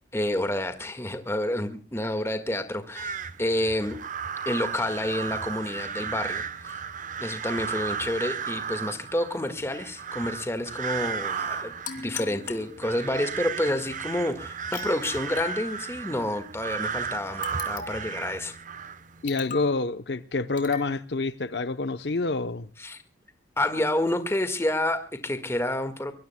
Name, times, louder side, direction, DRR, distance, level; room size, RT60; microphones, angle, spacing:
voice 1, 0.1-4.0 4.4-6.8 7.2-18.6 22.8-23.0 23.6-26.1, left 1 dB, 15° left, 1.7 m, -29 dB
sound 1, 2.9-19.2, right 7 dB, 45° right, 0.9 m, -35 dB
sound 2, 11.8-13.3 14.7-16.2 17.4-18.2 19.3-19.8 20.6-20.9, left 5 dB, 45° left, 3.1 m, -39 dB
voice 2, 19.2-22.7, left 3 dB, 65° left, 0.8 m, -27 dB
24.0 x 23.5 x 2.2 m
head